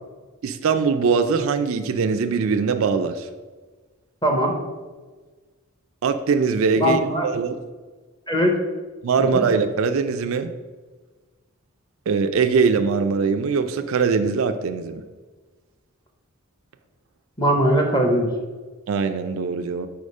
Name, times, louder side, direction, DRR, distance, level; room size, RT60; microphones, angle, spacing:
voice 1, 0.4-3.3 6.0-7.6 9.0-10.5 12.1-15.0 18.9-19.9, right 5 dB, 70° right, 8 dB, 0.4 m, -22 dB
voice 2, 4.2-4.6 6.8-7.3 8.3-8.6 9.2-9.4 17.4-18.3, equal, 20° left, 2 dB, 0.8 m, -20 dB
4.9 x 4.6 x 5.3 m, 1.3 s
head